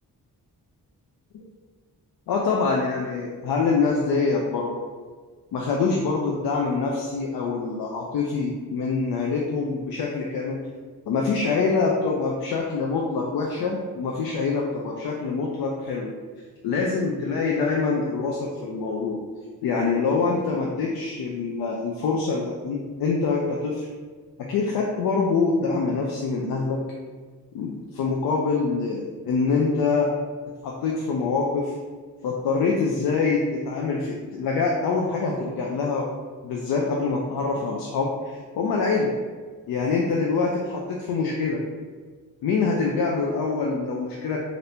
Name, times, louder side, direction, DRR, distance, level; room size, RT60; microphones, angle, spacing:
voice 1, 2.3-4.7 5.5-10.6 11.1-16.1 16.6-19.2 19.6-23.9 24.5-26.8 27.5-30.1 30.6-31.7 32.2-36.1 36.4-39.1 39.7-41.6 42.4-44.4, left 4 dB, 80° left, -1 dB, 0.5 m, -25 dB
2.8 x 2.6 x 3.3 m, 1.5 s
wide cardioid pair, 155°, 35 cm